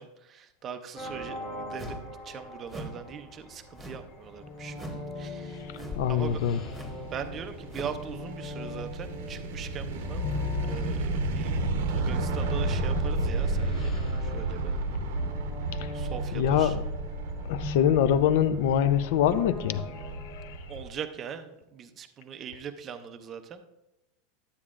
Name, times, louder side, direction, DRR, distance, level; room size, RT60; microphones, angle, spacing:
voice 1, 0.0-4.8 5.2-5.7 6.1-6.4 7.1-10.2 10.7-14.0 14.2-14.7 15.9-16.8 20.7-23.6, right 7 dB, 20° right, 7 dB, 0.5 m, -40 dB
sound 1, 0.9-20.6, left 3 dB, 35° left, 1.5 m, -39 dB
sound 2, 1.8-2.1 2.7-3.0 3.7-4.2 4.7-5.1 5.7-6.1 6.7-7.0 7.7-8.0, right 1 dB, 5° right, 1.1 m, -41 dB
sound 3, 5.4-20.9, right 2 dB, 75° right, 0.8 m, -32 dB
voice 2, 6.0-6.6 15.8-15.9 16.3-16.8 17.5-19.8 20.2-20.5, left 9 dB, 60° left, 13 dB, 0.5 m, -24 dB
12.0 x 8.3 x 2.5 m, 0.94 s
supercardioid pair, 175°, 0 cm